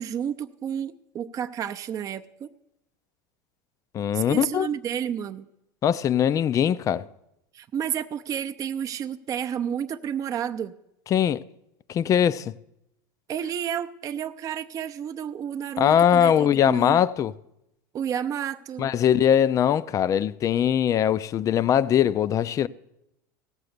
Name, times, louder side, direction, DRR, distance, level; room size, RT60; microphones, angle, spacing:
voice 1, 0.0-2.5 4.1-5.5 7.5-10.7 13.3-17.0 17.9-18.9, right 9 dB, 35° right, 0.6 m, -31 dB
voice 2, 3.9-4.7 5.8-7.0 11.1-11.4 11.9-12.5 15.8-17.3 18.8-22.7, left 9 dB, 30° left, 0.4 m, -21 dB
16.5 x 6.9 x 6.6 m
supercardioid pair, 110°, 11 cm